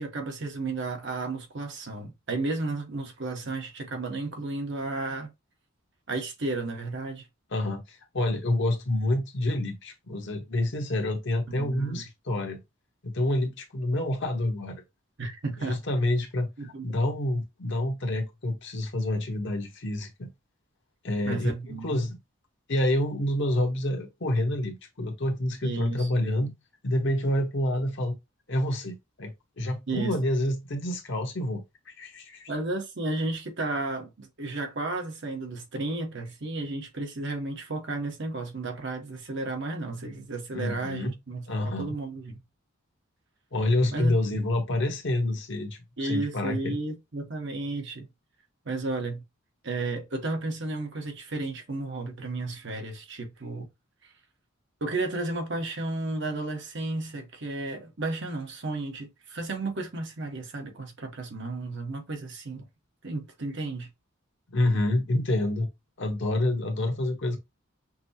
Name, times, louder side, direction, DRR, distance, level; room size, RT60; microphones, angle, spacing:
voice 1, 0.0-5.3 6.1-7.3 11.5-12.0 15.2-15.8 16.6-16.9 21.2-22.0 25.6-26.3 29.9-30.2 32.5-42.4 43.9-44.2 46.0-48.1 48.6-49.2 49.6-53.7 54.8-62.6 63.0-63.9, right 2 dB, 60° right, 1.0 m, -33 dB
voice 2, 7.5-12.6 13.0-14.8 15.6-20.3 21.0-22.2 22.7-26.5 26.8-28.1 28.5-32.5 40.5-41.1 41.5-41.9 43.5-46.8 64.5-65.7 66.0-67.4, left 1 dB, 60° left, 1.0 m, -28 dB
5.9 x 2.0 x 2.8 m
head